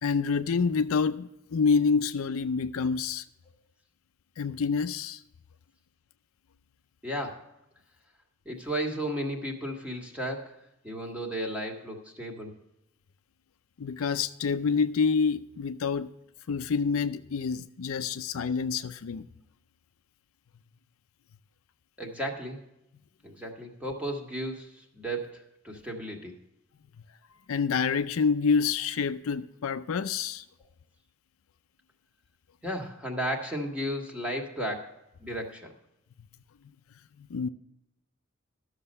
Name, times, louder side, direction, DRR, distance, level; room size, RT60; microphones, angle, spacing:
voice 1, 0.0-3.2 4.4-5.2 13.8-16.1 16.5-19.3 27.5-30.4 37.2-37.5, left 5 dB, 75° left, 0.5 m, -27 dB
voice 2, 7.0-7.4 8.4-12.5 22.0-22.6 23.2-26.3 32.6-35.7, right 1 dB, 5° right, 1.7 m, -34 dB
13.0 x 6.6 x 5.4 m
head